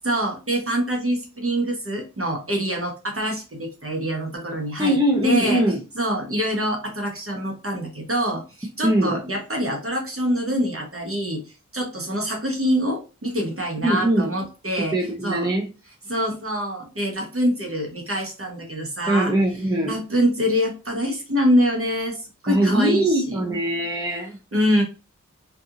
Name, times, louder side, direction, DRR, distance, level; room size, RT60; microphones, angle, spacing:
voice 1, 0.0-5.0 5.2-5.6 5.9-11.4 11.7-15.0 15.2-15.5 16.1-19.3 19.9-23.4 24.5-24.8, equal, 45° right, 1.0 m, -25 dB
voice 2, 4.8-5.8 8.8-9.2 13.8-14.3 14.9-15.7 19.1-20.0 22.5-24.4, right 1 dB, 15° right, 0.6 m, -21 dB
2.7 x 2.6 x 2.4 m
wide cardioid pair, 50°, 31 cm